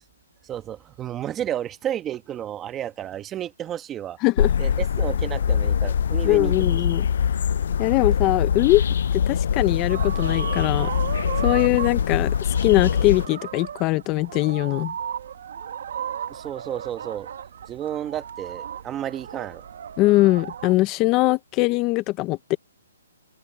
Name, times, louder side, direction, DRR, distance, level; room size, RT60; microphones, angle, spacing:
voice 1, 0.4-4.2 4.6-6.5 16.3-17.3 17.7-19.6, right 10 dB, 15° right, 1.3 m, -32 dB
voice 2, 4.2-4.5 6.2-7.1 7.8-8.8 9.1-10.9 11.4-14.9 20.0-22.6, left 19 dB, 20° left, 0.7 m, -21 dB
sound 1, 4.4-13.3, left 8 dB, 60° left, 0.4 m, -23 dB
sound 2, 9.9-20.7, right 8 dB, 55° right, 1.2 m, -35 dB
open air
hypercardioid pair, 160°, 0 cm